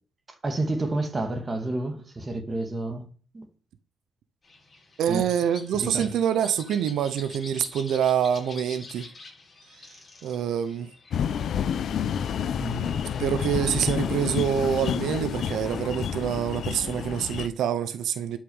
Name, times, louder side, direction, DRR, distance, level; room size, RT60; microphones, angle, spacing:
voice 1, 0.4-3.5 5.1-5.2 5.7-6.1 12.6-13.0, right 2 dB, 20° right, 2.2 m, -30 dB
sound 1, 4.4-13.3, left 3 dB, 25° left, 6.7 m, -47 dB
voice 2, 5.0-9.1 9.8-10.9 13.2-18.4, right 9 dB, 80° right, 0.8 m, -26 dB
sound 2, 11.1-17.5, left 8 dB, 60° left, 0.8 m, -29 dB
11.5 x 6.4 x 5.5 m
cardioid pair, 130°, 0 cm